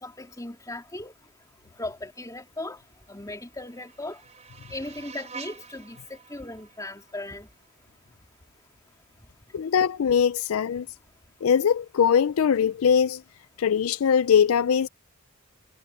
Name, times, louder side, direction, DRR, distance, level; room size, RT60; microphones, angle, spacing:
voice 1, 0.0-1.1 1.8-2.8 3.1-4.2 4.7-7.5, left 2 dB, 15° left, 3.3 m, -37 dB
sound 1, 3.1-8.1, right 6 dB, 30° right, 3.6 m, -47 dB
voice 2, 9.5-10.9 11.4-13.2 13.6-14.9, left 7 dB, 65° left, 0.4 m, -21 dB
head